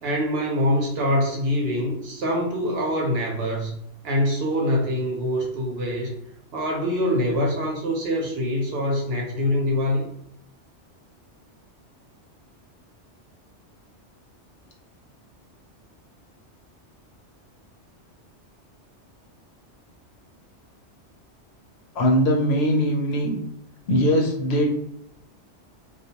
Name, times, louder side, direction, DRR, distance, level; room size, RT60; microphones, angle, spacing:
voice 1, 0.0-3.7 4.0-6.1 6.5-10.0, equal, 65° right, -1 dB, 0.9 m, -24 dB
voice 2, 22.0-23.4 23.9-24.7, equal, 70° left, 0 dB, 0.9 m, -21 dB
2.3 x 2.2 x 2.7 m, 0.72 s
omnidirectional pair, 1.2 m